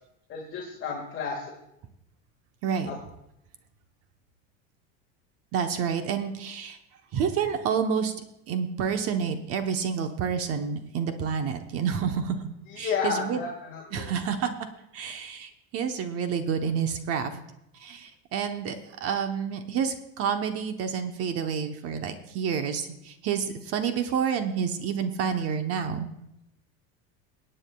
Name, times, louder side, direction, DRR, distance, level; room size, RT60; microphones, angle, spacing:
voice 1, 0.3-1.5 2.9-3.0 12.7-14.1, left 5 dB, 35° left, -1 dB, 1.8 m, -32 dB
voice 2, 5.5-6.8 7.1-8.1 8.5-12.4 12.8-13.4 13.9-14.5 14.9-17.4 17.8-26.1, right 7 dB, 45° right, 7 dB, 1.0 m, -29 dB
22.5 x 8.9 x 2.3 m, 0.85 s
supercardioid pair, 140°, 32 cm